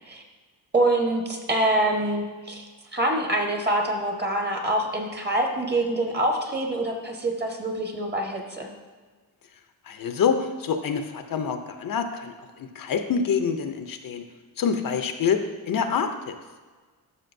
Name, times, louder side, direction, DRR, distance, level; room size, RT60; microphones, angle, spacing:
voice 1, 0.7-2.6 2.9-8.7, right 1 dB, 25° right, 2 dB, 1.2 m, -25 dB
voice 2, 9.9-14.2 14.6-16.4, left 6 dB, 55° left, 7 dB, 0.6 m, -26 dB
12.0 x 5.8 x 2.6 m, 1.4 s
cardioid pair, 120°, 40 cm